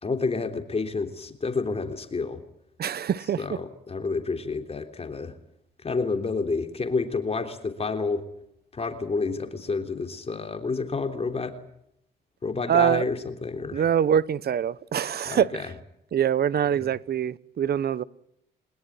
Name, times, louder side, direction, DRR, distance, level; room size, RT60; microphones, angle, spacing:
voice 1, 0.0-2.4 3.4-5.3 5.8-8.2 8.7-11.6 12.4-13.8 15.3-15.7 16.7-16.9, left 4 dB, 30° left, 3.4 m, -29 dB
voice 2, 2.8-3.4 12.7-13.0 13.7-15.7 16.1-18.0, right 9 dB, 55° right, 1.0 m, -24 dB
23.0 x 20.5 x 9.7 m
cardioid pair, 90°, 20 cm